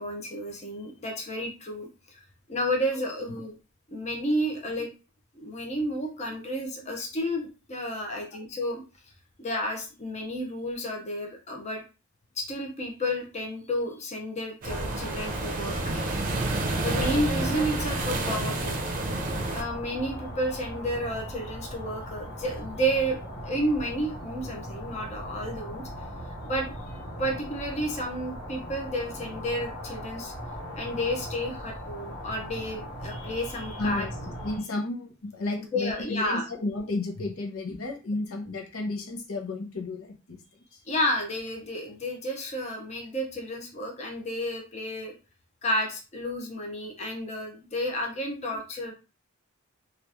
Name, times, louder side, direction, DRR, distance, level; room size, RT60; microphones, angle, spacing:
voice 1, 0.0-1.9 2.1-2.2 2.5-3.5 3.9-4.9 5.3-8.8 9.4-11.8 12.4-15.7 16.8-18.8 19.5-25.8 26.4-30.3 30.7-34.1 35.7-36.4 40.9-45.1 45.6-48.9, equal, 30° left, 2 dB, 0.7 m, -31 dB
voice 2, 2.9-3.4 4.5-4.6 6.8-6.9 8.1-8.2 33.8-40.4 48.5-48.6, left 2 dB, 85° left, 2 dB, 0.7 m, -33 dB
sound 1, 14.6-34.6, equal, 55° left, 1.9 m, -39 dB
sound 2, 14.6-19.6, right 2 dB, 40° right, 0.6 m, -29 dB
2.9 x 2.4 x 3.4 m, 0.32 s
head